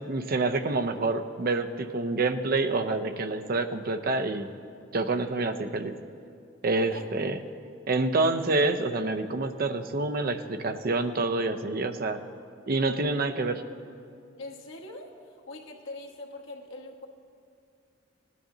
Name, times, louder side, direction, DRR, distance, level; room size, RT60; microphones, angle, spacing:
voice 1, 0.1-4.5 4.9-6.0 6.6-7.4 7.9-12.2 12.7-13.6, right 3 dB, 50° right, 8 dB, 0.6 m, -27 dB
voice 2, 14.4-17.1, left 2 dB, 85° left, 0 dB, 1.3 m, -43 dB
17.0 x 9.9 x 3.8 m, 2.4 s
head